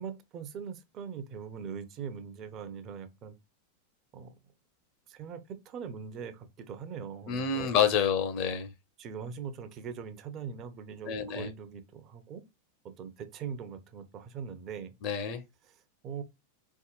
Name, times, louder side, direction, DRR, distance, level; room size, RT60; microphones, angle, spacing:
voice 1, 0.0-3.3 4.1-4.3 5.1-7.7 9.0-12.4 12.8-14.9 15.6-16.2, right 6 dB, 35° right, 0.7 m, -41 dB
voice 2, 7.3-8.7 11.0-11.5 15.0-15.4, left 7 dB, 40° left, 0.7 m, -28 dB
4.0 x 3.7 x 2.4 m
figure-of-eight pair, 90°, 0 cm